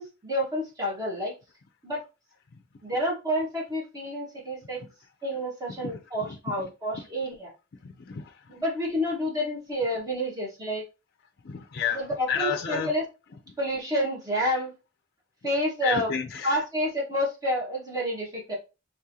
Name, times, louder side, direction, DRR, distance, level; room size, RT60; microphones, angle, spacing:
voice 1, 0.0-1.3 1.8-2.0 2.8-4.8 5.2-7.5 8.5-10.8 11.9-13.0 13.6-14.7 15.4-16.1 16.4-18.5, equal, 20° right, 1.5 m, -29 dB
voice 2, 7.8-8.2 11.4-12.0 12.3-12.9 15.8-16.5, left 7 dB, 55° left, 0.5 m, -30 dB
3.6 x 3.4 x 2.8 m
head